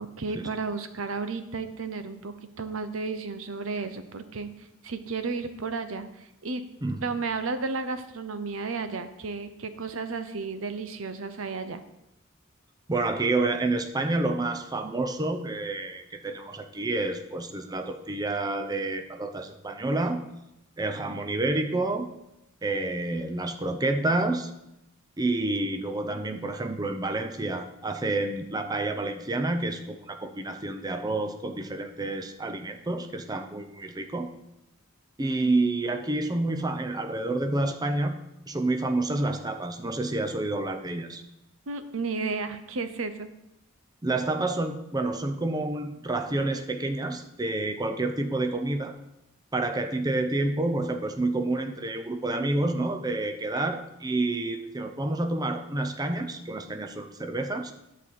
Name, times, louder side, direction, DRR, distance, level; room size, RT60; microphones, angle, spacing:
voice 1, 0.0-6.6 7.0-11.8 35.4-35.5 41.7-43.3, right 4 dB, 70° right, 10 dB, 0.7 m, -33 dB
voice 2, 12.9-20.2 20.8-22.1 22.6-24.5 25.2-34.3 35.2-38.2 38.5-41.2 44.0-48.9 49.5-57.7, right 2 dB, 20° right, 6 dB, 0.6 m, -29 dB
11.0 x 4.1 x 7.4 m, 0.86 s
head